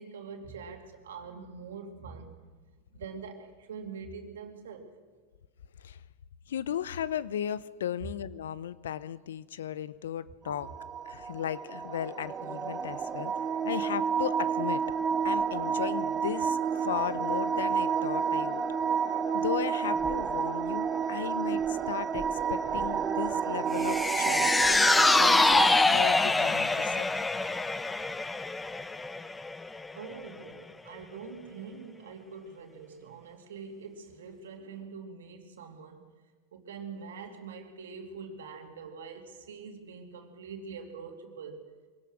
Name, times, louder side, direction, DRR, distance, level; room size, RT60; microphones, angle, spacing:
voice 1, 0.0-2.4 2.9-4.9 8.0-8.1 29.9-36.1 36.5-41.7, right 5 dB, 85° right, 2.6 m, -44 dB
voice 2, 6.5-10.7 11.1-14.9 15.2-18.6 19.3-27.1, left 9 dB, 80° left, 0.7 m, -36 dB
sound 1, 10.5-25.8, right 6 dB, 30° right, 1.1 m, -30 dB
sound 2, 23.8-30.2 30.6-30.7, left 3 dB, 10° left, 0.8 m, -25 dB
23.5 x 18.0 x 6.4 m
hypercardioid pair, 105°, 0 cm